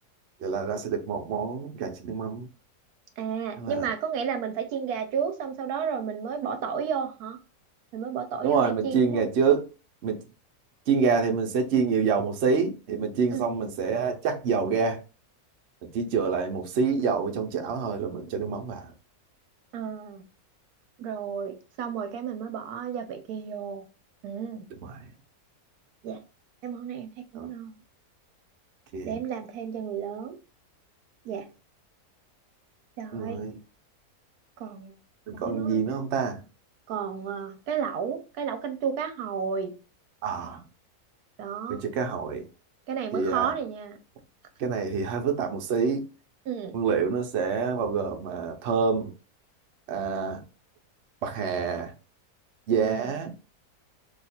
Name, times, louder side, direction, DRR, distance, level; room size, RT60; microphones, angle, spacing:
voice 1, 0.4-2.5 3.6-3.9 8.4-9.7 10.0-10.2 10.9-15.0 15.8-18.9 24.8-25.1 27.3-27.5 28.9-29.2 33.1-33.6 35.3-36.4 40.2-40.6 41.7-42.5 43.1-43.5 44.6-46.1 46.7-49.1 49.9-50.4 51.2-51.9 52.7-53.3, right 5 dB, 60° right, 0.8 m, -27 dB
voice 2, 3.2-7.4 7.9-9.3 13.3-13.5 19.7-20.2 21.0-23.9 24.2-24.7 26.0-26.2 26.6-27.7 29.0-30.4 31.2-31.5 33.0-33.4 34.6-35.0 35.3-36.0 36.9-39.8 41.4-41.8 42.9-44.0 46.5-46.8 52.7-53.1, right 7 dB, 80° right, 1.1 m, -32 dB
2.8 x 2.4 x 4.1 m
omnidirectional pair, 1.6 m